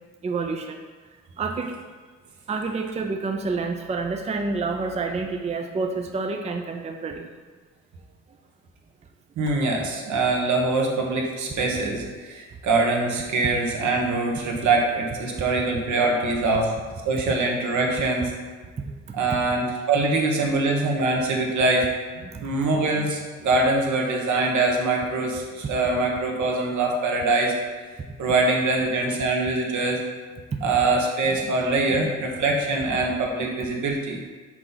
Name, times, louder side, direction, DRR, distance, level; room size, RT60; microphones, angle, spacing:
voice 1, 0.2-0.8 1.4-1.8 2.5-7.3 18.8-19.0 22.3-22.4, right 4 dB, 20° right, 4 dB, 0.5 m, -28 dB
voice 2, 9.4-16.7 17.0-18.3 19.1-21.9 22.1-27.6 28.2-30.0 30.6-34.2, right 3 dB, 70° right, 0 dB, 1.2 m, -23 dB
6.1 x 4.4 x 4.0 m, 1.4 s
cardioid pair, 90°, 30 cm